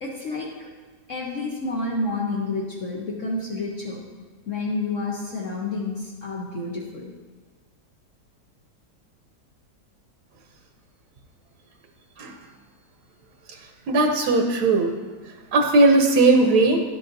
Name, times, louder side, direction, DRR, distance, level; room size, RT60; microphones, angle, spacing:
voice 1, 0.0-0.7 1.1-4.0 4.5-7.1, left 3 dB, 55° left, -3 dB, 1.2 m, -29 dB
voice 2, 13.9-14.9 15.5-16.8, right 2 dB, 85° right, 3 dB, 1.3 m, -18 dB
11.0 x 7.5 x 2.6 m, 1.3 s
omnidirectional pair, 1.7 m